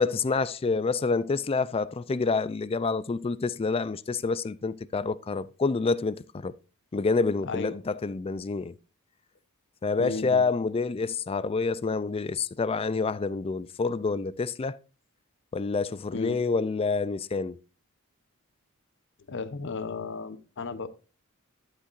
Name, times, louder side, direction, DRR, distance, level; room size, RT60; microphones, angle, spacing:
voice 1, 0.0-6.5 6.9-8.7 9.8-14.8 15.5-17.6, left 4 dB, 25° left, 0.4 m, -27 dB
voice 2, 7.4-7.8 10.0-10.5 16.1-16.4 19.3-20.9, left 4 dB, 55° left, 0.9 m, -34 dB
11.5 x 8.1 x 2.5 m
head